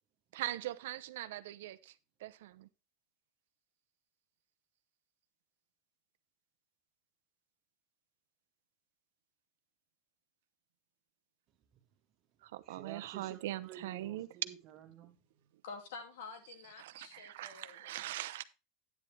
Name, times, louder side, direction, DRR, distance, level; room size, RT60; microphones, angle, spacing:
voice 1, 0.3-1.9 2.2-2.7 12.5-14.3 16.8-18.4, right 14 dB, 90° right, 0.7 m, -41 dB
voice 2, 12.6-15.5, right 10 dB, 35° right, 1.8 m, -52 dB
voice 3, 15.6-18.0, left 4 dB, 85° left, 2.5 m, -49 dB
9.7 x 9.3 x 3.3 m
supercardioid pair, 170°, 0 cm